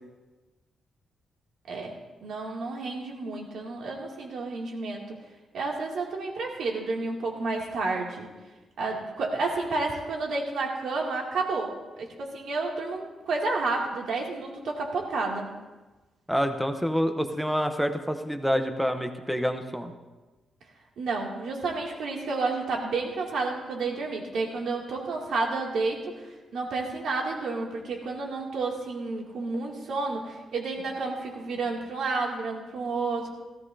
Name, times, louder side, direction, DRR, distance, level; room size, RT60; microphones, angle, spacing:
voice 1, 2.2-5.2 5.5-8.3 8.8-15.5 21.0-33.3, right 3 dB, 70° right, -1 dB, 2.5 m, -31 dB
voice 2, 16.3-19.9, equal, ahead, 6 dB, 0.9 m, -27 dB
17.5 x 15.0 x 2.8 m, 1.2 s
wide cardioid pair, 160°, 0 cm